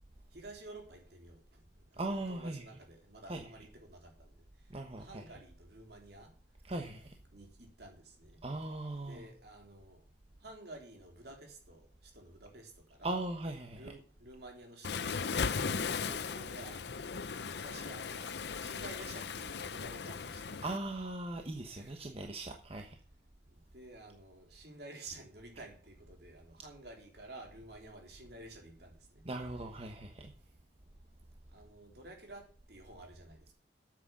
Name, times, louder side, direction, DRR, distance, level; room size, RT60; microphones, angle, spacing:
voice 1, 0.3-6.3 7.3-8.4 9.1-10.0 10.4-13.2 13.8-20.6 21.7-22.0 23.4-29.3 31.5-33.5, right 2 dB, 65° right, 2 dB, 3.6 m, -52 dB
voice 2, 2.0-2.7 3.3-3.7 4.7-5.2 6.6-7.1 8.4-9.3 13.0-13.9 20.6-23.0 29.2-30.3, right 2 dB, 35° right, 3 dB, 1.1 m, -39 dB
Waves surf, 14.8-20.8, left 5 dB, 65° left, 0.6 m, -37 dB
9.3 x 7.8 x 7.1 m, 0.43 s
head